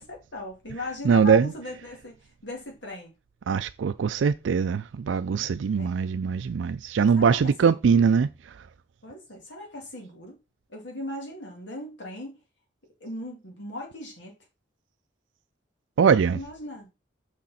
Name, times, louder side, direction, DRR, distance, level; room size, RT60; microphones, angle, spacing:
voice 1, 0.0-3.1 5.8-5.9 7.1-8.1 9.0-10.4 10.7-12.4 13.0-14.3 16.3-16.9, left 1 dB, 70° left, 2.4 m, -38 dB
voice 2, 1.0-1.5 3.5-8.7 16.0-16.4, right 6 dB, 80° right, 0.4 m, -22 dB
6.3 x 6.2 x 4.2 m
head